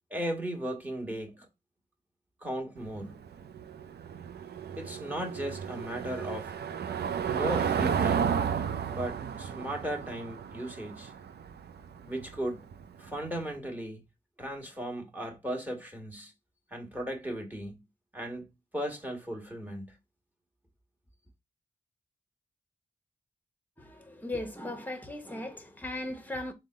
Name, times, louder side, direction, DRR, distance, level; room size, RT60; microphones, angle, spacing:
voice 1, 0.1-1.5 2.4-3.2 4.8-6.5 7.3-8.4 8.9-11.1 12.1-12.7 13.0-14.0 14.4-16.3 16.7-17.8 18.1-18.5 18.7-20.0, right 1 dB, 10° right, 1.4 m, -36 dB
Car passing by / Engine, 2.8-13.4, right 7 dB, 70° right, 0.4 m, -33 dB
voice 2, 23.8-26.5, left 1 dB, 10° left, 0.9 m, -37 dB
3.7 x 2.2 x 3.8 m
cardioid pair, 65°, 17 cm